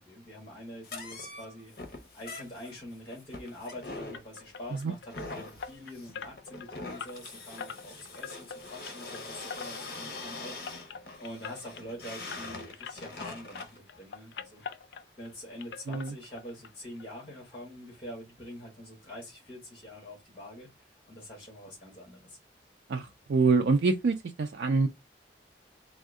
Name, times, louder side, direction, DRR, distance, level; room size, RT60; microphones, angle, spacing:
voice 1, 0.0-1.7 2.1-14.6 15.2-20.7 21.1-22.4, left 1 dB, 30° left, 1.7 m, -45 dB
sound 1, 0.8-13.8, left 3 dB, 55° left, 0.8 m, -43 dB
sound 2, 4.1-13.3 13.5-15.3 15.6-16.7 17.0-17.1 17.5-17.6 18.0-18.1, left 6 dB, 85° left, 0.4 m, -45 dB
voice 2, 22.9-24.9, right 4 dB, 75° right, 0.4 m, -26 dB
3.5 x 2.1 x 3.5 m
head